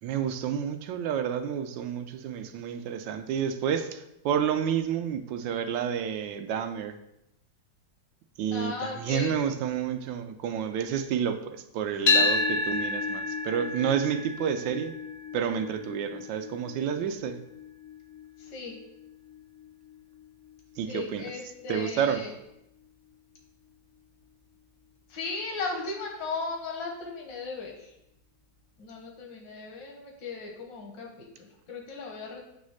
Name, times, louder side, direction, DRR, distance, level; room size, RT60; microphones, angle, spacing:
voice 1, 0.0-6.9 8.4-15.0 15.3-17.4 20.8-21.3 21.7-22.2, right 8 dB, 90° right, 7 dB, 1.4 m, -30 dB
voice 2, 8.5-9.3 12.0-12.3 18.4-18.8 20.8-22.3 25.1-27.9 28.8-32.5, left 4 dB, 80° left, 1 dB, 1.9 m, -37 dB
sound 1, 12.1-20.2, left 3 dB, 60° left, 0.7 m, -31 dB
7.7 x 3.2 x 6.3 m, 0.83 s
omnidirectional pair, 2.0 m